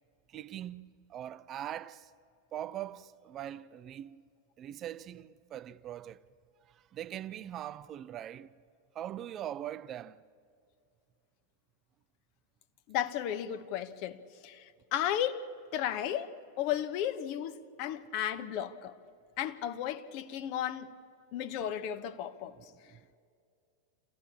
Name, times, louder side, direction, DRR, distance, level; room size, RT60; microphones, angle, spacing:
voice 1, 0.3-2.1 2.5-4.2 4.6-6.3 6.6-8.6 8.9-10.2 22.5-23.2, right 11 dB, 30° right, 0.5 m, -42 dB
voice 2, 12.9-15.5 15.7-19.0 19.4-20.9 21.3-22.5, left 10 dB, 45° left, 1.0 m, -34 dB
26.5 x 15.5 x 8.7 m
figure-of-eight pair, 90°, 0 cm